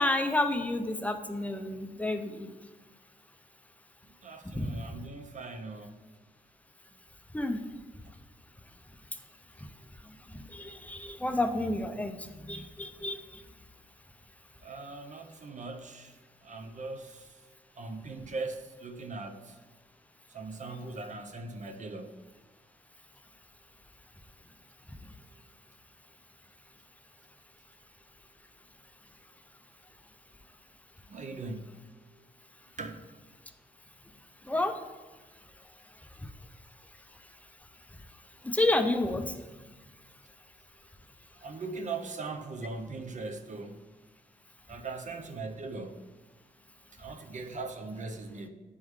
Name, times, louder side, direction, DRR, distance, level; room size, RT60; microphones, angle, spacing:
voice 1, 0.0-2.5 4.6-4.7 7.3-7.6 10.5-12.2 12.5-13.2 34.5-34.7 38.4-39.2, left 2 dB, 10° left, 6 dB, 0.5 m, -29 dB
voice 2, 4.2-5.9 14.6-16.2 16.4-17.4 17.8-19.6 20.3-22.2 31.1-31.9 32.8-33.0 41.4-43.8 44.7-46.0 46.9-48.5, right 3 dB, 50° right, 6 dB, 0.7 m, -40 dB
9.5 x 3.6 x 3.2 m, 1.2 s
cardioid pair, 85°, 16 cm